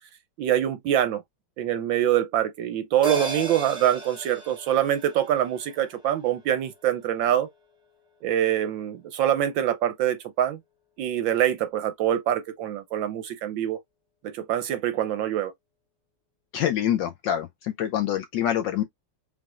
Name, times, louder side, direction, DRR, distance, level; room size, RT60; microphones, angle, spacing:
voice 1, 0.4-1.2 1.6-7.5 8.2-10.6 11.0-13.8 14.2-15.5, right 11 dB, 75° right, 1.2 m, -25 dB
sound 1, 3.0-7.7 8.1-8.2, right 2 dB, 5° right, 0.8 m, -37 dB
voice 2, 16.5-18.8, left 10 dB, 75° left, 1.0 m, -26 dB
4.8 x 3.8 x 2.4 m
omnidirectional pair, 2.4 m